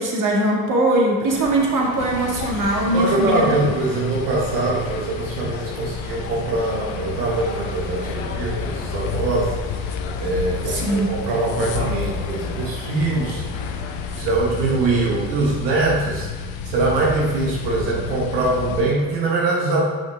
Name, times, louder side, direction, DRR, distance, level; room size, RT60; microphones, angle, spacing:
voice 1, 0.0-3.4 10.7-11.1, right 1 dB, 40° right, -2 dB, 2.0 m, -21 dB
sound 1, 1.3-14.2, left 6 dB, 65° left, 0.9 m, -36 dB
sound 2, 2.0-18.8, left 5 dB, 90° left, 0.6 m, -31 dB
voice 2, 2.9-13.5 14.1-19.8, right 2 dB, 90° right, -3 dB, 1.4 m, -23 dB
7.2 x 5.8 x 3.5 m, 1.3 s
hypercardioid pair, 60°, 49 cm